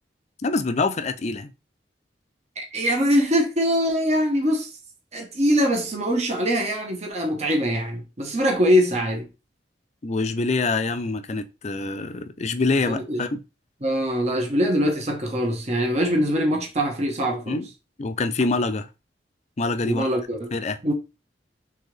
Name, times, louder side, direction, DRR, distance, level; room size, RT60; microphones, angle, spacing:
voice 1, 0.4-1.5 10.0-13.4 17.5-17.7 18.0-18.9 19.6-20.1 20.5-20.8, left 3 dB, 40° left, 0.5 m, -25 dB
voice 2, 2.6-4.7 5.1-9.3 12.9-13.2 13.8-17.6 19.8-20.5 20.8-20.9, equal, 40° right, 1.1 m, -23 dB
4.4 x 3.5 x 3.3 m
head